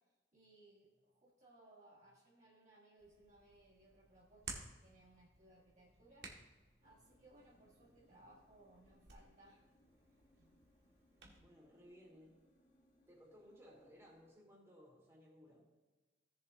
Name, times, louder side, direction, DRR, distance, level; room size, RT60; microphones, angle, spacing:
voice 1, 0.3-6.3 6.8-9.6, right 2 dB, 40° right, -6 dB, 1.5 m, -65 dB
Hands, 3.0-11.4, right 4 dB, 70° right, 1.7 m, -57 dB
sound 1, 6.8-14.3, left 1 dB, 40° left, 1.1 m, -74 dB
voice 2, 11.4-12.4 13.1-15.7, equal, 15° right, -4 dB, 2.8 m, -61 dB
17.0 x 7.2 x 2.7 m, 1.2 s
head